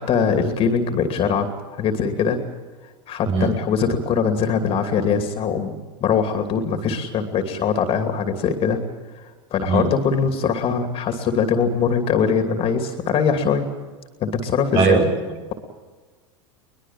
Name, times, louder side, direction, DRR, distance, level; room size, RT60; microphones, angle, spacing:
voice 1, 0.0-2.4 3.1-8.8 9.1-13.7 14.2-15.0, left 6 dB, 35° left, 6 dB, 2.7 m, -22 dB
voice 2, 14.7-15.4, right 4 dB, 55° right, 4 dB, 5.2 m, -20 dB
22.5 x 21.0 x 7.5 m, 1.3 s
hypercardioid pair, 110°, 15 cm